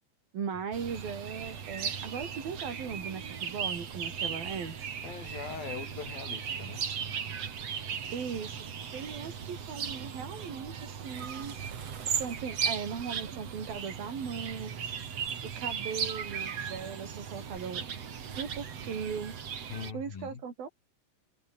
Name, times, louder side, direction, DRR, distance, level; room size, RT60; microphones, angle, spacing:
voice 1, 0.3-4.8 8.1-8.6 8.9-11.5 12.1-14.9 15.6-19.3 19.9-20.7, right 6 dB, 85° right, 5.9 m, -38 dB
sound 1, 0.7-19.9, right 7 dB, 50° right, 3.2 m, -37 dB
voice 2, 5.0-6.9 19.7-20.4, left 5 dB, 80° left, 6.7 m, -41 dB
omnidirectional pair, 4.1 m